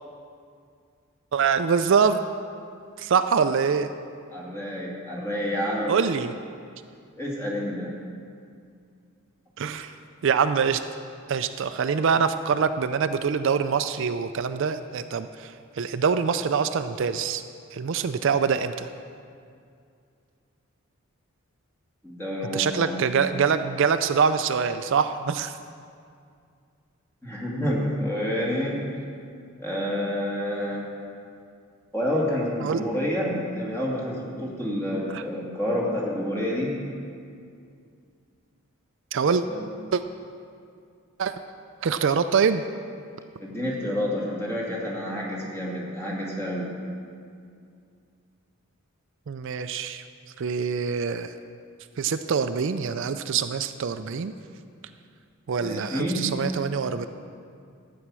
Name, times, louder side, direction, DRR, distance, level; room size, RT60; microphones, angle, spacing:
voice 1, 1.3-2.2 3.0-3.9 5.9-6.4 9.6-10.0 10.2-10.8 11.3-17.4 17.7-18.9 22.5-25.6 32.6-32.8 35.1-35.2 39.1-39.4 39.9-40.0 41.2-41.3 41.8-42.6 49.3-50.0 50.4-51.3 52.0-54.3 55.5-57.1, right 6 dB, 60° right, 10 dB, 0.4 m, -24 dB
voice 2, 4.3-6.0 7.2-7.9 22.0-23.1 27.2-28.8 29.6-30.9 31.9-36.8 39.5-39.6 43.4-46.7 55.6-56.2, equal, 10° left, -4 dB, 2.3 m, -28 dB
13.0 x 8.6 x 6.1 m, 2.3 s
head